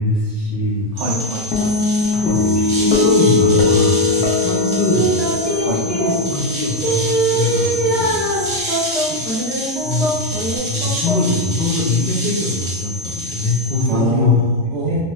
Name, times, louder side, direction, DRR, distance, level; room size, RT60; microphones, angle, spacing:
voice 1, 0.0-0.9 2.1-5.1 5.8-8.7 9.1-9.2 9.8-14.4 14.9-15.0, left 2 dB, 45° left, -8 dB, 0.6 m, -22 dB
voice 2, 0.9-1.8 5.6-5.8 13.9-15.0, right 1 dB, 65° right, -1 dB, 0.7 m, -23 dB
sound 1, 1.0-13.8, equal, 50° right, 0.3 m, -28 dB
sound 2, 1.5-8.1, left 3 dB, 80° left, 1.1 m, -20 dB
sound 3, 4.9-6.1 6.8-11.3 11.8-11.9, right 2 dB, ahead, 0.9 m, -22 dB
3.1 x 2.3 x 3.0 m, 1.4 s
omnidirectional pair, 1.6 m